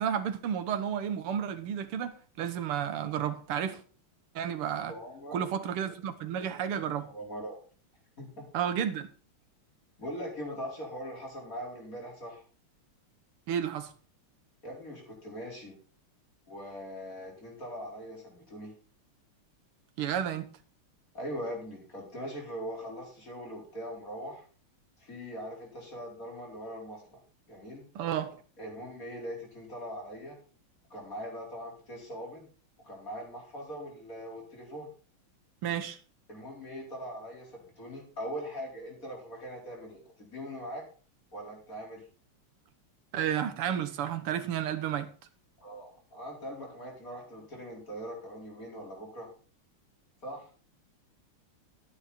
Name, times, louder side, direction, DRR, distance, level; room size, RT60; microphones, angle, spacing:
voice 1, 0.0-3.8 4.4-4.9 5.3-7.1 8.5-9.1 13.5-13.9 20.0-20.5 28.0-28.4 35.6-36.0 43.1-45.1, right 9 dB, 90° right, 2.0 m, -32 dB
voice 2, 4.8-5.4 6.4-6.5 7.0-7.6 8.2-8.5 10.0-12.4 14.6-15.8 16.5-18.7 21.1-24.4 25.0-27.2 27.5-27.9 28.6-30.4 30.9-32.4 32.8-34.9 36.3-40.9 41.3-42.0 45.6-49.3 50.2-50.5, equal, 40° left, 5.0 m, -41 dB
14.0 x 8.8 x 4.3 m
omnidirectional pair, 2.4 m